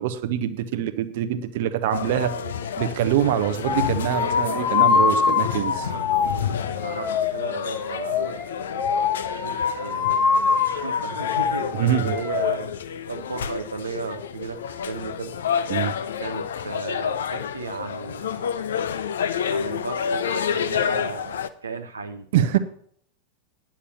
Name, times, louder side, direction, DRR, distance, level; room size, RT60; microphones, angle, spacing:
voice 1, 0.0-2.3 2.8-5.9 11.7-12.1 15.7-15.9 22.3-22.6, right 11 dB, 50° right, 11 dB, 1.0 m, -24 dB
sound 1, 1.9-21.5, left 8 dB, 65° left, 0.7 m, -30 dB
voice 2, 1.9-2.6 5.4-8.4 9.3-10.3 10.6-12.7 13.1-15.3 16.2-18.6 19.5-22.6, right 4 dB, 75° right, 5 dB, 0.7 m, -35 dB
sound 2, 3.7-12.5, left 6 dB, 30° left, 1.4 m, -24 dB
9.9 x 7.3 x 7.0 m, 0.62 s
figure-of-eight pair, 90°, 0 cm